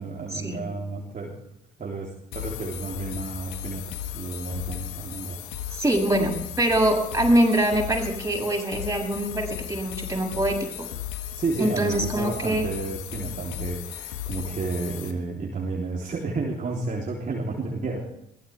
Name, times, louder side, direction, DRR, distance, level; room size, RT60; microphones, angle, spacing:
voice 1, 0.0-1.4 1.8-5.4 11.4-18.0, right 3 dB, 40° right, -2 dB, 3.4 m, -31 dB
sound 1, 2.3-15.1, left 12 dB, 75° left, 1.6 m, -36 dB
voice 2, 5.7-10.6 11.6-12.7, right 1 dB, 15° right, 0 dB, 7.7 m, -24 dB
23.0 x 17.0 x 3.5 m, 0.81 s
hypercardioid pair, 50°, 21 cm